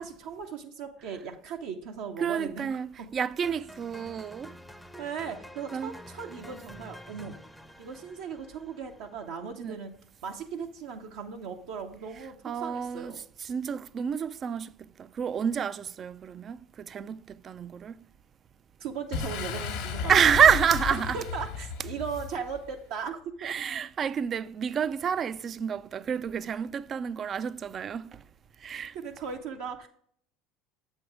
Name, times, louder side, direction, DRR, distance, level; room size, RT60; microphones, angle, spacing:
voice 1, 0.0-3.1 5.0-7.4 7.8-9.9 10.2-13.2 18.8-20.2 20.9-23.5 28.9-29.9, right 6 dB, 70° right, 0.7 m, -38 dB
voice 2, 2.2-4.5 5.7-6.0 9.6-9.8 12.4-18.0 20.1-21.2 23.4-28.2 28.6-29.0, right 7 dB, 40° right, 0.3 m, -28 dB
sound 1, 3.4-9.5, equal, 5° left, 0.6 m, -49 dB
Boom, 19.1-22.7, left 6 dB, 70° left, 1.2 m, -34 dB
7.7 x 4.5 x 4.8 m
hypercardioid pair, 70°, 0 cm